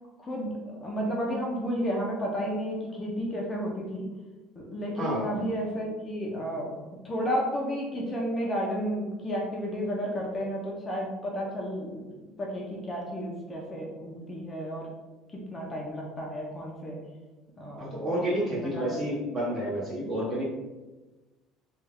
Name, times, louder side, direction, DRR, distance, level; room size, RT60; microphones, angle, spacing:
voice 1, 0.2-4.1 4.5-12.0 12.4-14.9 15.3-17.0 17.6-18.8, equal, 15° left, -2 dB, 0.6 m, -32 dB
voice 2, 5.0-5.4 17.8-20.4, right 1 dB, 25° right, -6 dB, 1.2 m, -30 dB
3.2 x 2.3 x 3.4 m, 1.2 s
cardioid pair, 145°, 0 cm